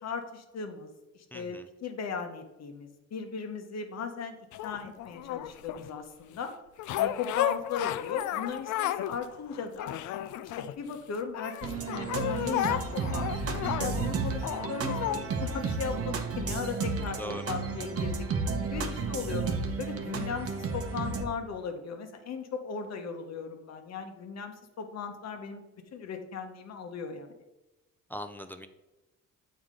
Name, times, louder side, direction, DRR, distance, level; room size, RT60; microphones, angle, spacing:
voice 1, 0.0-4.4 4.6-6.5 7.0-9.9 10.4-18.2 18.7-19.5 19.8-25.6 25.9-27.3, left 5 dB, 60° left, 6 dB, 1.0 m, -37 dB
voice 2, 1.3-1.7 17.2-17.4 28.1-28.7, equal, 5° left, 7 dB, 0.5 m, -40 dB
sound 1, 4.5-5.9 6.8-9.2 9.5-11.0 11.3-15.2 15.9-16.0, left 12 dB, 75° left, 0.4 m, -33 dB
sound 2, 11.6-21.2, right 4 dB, 50° right, 0.9 m, -32 dB
7.5 x 4.7 x 3.7 m, 1.0 s
cardioid pair, 90°, 30 cm